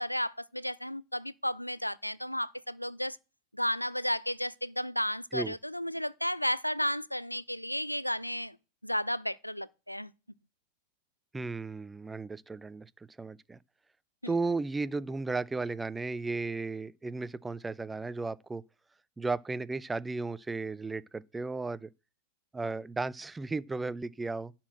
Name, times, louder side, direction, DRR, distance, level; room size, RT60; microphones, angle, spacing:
voice 1, 0.0-3.2 3.5-8.6 8.8-10.1 14.2-14.3, equal, 90° left, 0.4 m, -33 dB
voice 2, 11.3-12.9 13.2-13.6 14.3-18.6 19.2-21.9 22.5-24.5, right 3 dB, 10° right, 0.4 m, -34 dB
11.0 x 4.4 x 7.5 m
figure-of-eight pair, 90°, 0 cm